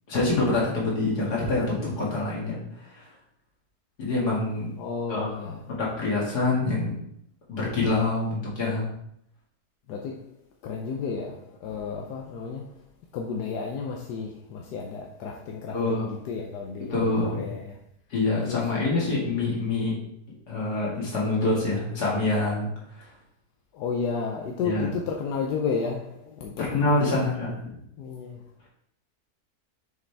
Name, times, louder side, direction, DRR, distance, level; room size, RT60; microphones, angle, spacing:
voice 1, 0.1-2.6 3.0-3.1 4.0-4.7 5.1-7.0 7.5-8.9 15.7-16.2 16.9-17.5 18.1-19.9 20.5-22.7 24.6-24.9 26.6-27.5, left 2 dB, 75° left, 2.6 m, -26 dB
voice 2, 4.8-5.6 9.9-10.3 10.6-12.8 13.1-17.8 18.4-19.0 23.7-26.7 27.1-27.2 28.0-28.4, left 5 dB, 90° left, 1.3 m, -32 dB
6.6 x 5.0 x 3.4 m
omnidirectional pair, 1.7 m